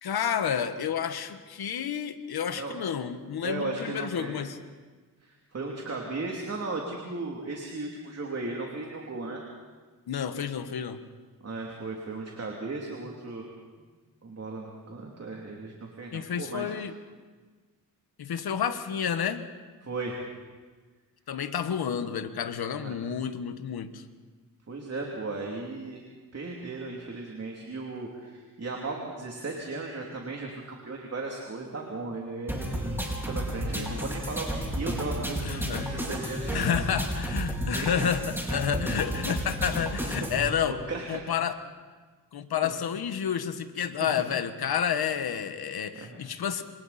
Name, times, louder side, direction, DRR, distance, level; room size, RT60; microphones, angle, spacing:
voice 1, 0.0-4.6 10.1-11.0 16.1-16.9 18.2-19.5 21.3-24.0 33.7-33.9 35.4-40.8 41.1-41.6 42.3-46.6, left 8 dB, 80° left, 9 dB, 1.4 m, -30 dB
voice 2, 3.4-4.4 5.2-9.4 11.4-13.5 14.2-16.7 19.8-20.2 22.8-23.0 24.7-26.0 26.3-36.7 37.7-38.1 39.1-39.2 40.0-40.1 40.9-41.2 42.6-42.7 44.0-44.1 45.9-46.2, right 3 dB, 40° right, -1 dB, 3.0 m, -36 dB
sound 1, 32.5-40.5, equal, 5° right, 4.6 m, -32 dB
27.0 x 27.0 x 4.3 m, 1.4 s
wide cardioid pair, 105°, 37 cm